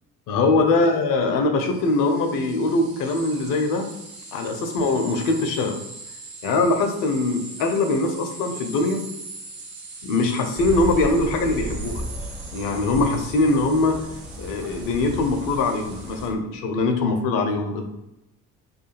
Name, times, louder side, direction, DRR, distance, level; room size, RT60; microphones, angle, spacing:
voice 1, 0.3-3.9 4.3-5.8 6.4-9.0 10.0-12.0 12.5-14.0 14.4-17.9, left 2 dB, 50° left, 5 dB, 0.6 m, -22 dB
sound 1, 1.6-16.3, right 3 dB, 55° right, 1.0 m, -41 dB
sound 2, 10.6-16.3, right 1 dB, 5° right, 0.6 m, -35 dB
2.4 x 2.2 x 3.1 m, 0.90 s
figure-of-eight pair, 50°, 44 cm